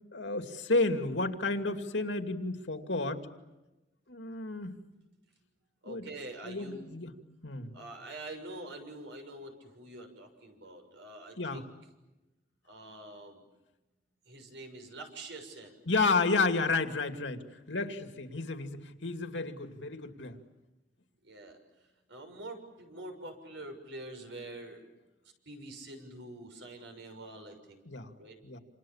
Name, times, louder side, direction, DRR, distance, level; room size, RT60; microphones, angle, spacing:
voice 1, 0.1-3.3 4.1-4.8 5.8-6.0 6.4-7.1 7.4-7.7 11.4-11.6 15.9-20.4 27.9-28.1 28.4-28.6, left 3 dB, 85° left, 6 dB, 2.5 m, -31 dB
voice 2, 5.8-7.0 7.7-11.7 12.7-13.5 14.3-15.8 21.2-21.6 22.1-24.8 25.4-27.8 28.2-28.4, right 2 dB, 80° right, 5 dB, 6.7 m, -46 dB
28.5 x 28.5 x 7.4 m, 1.1 s
head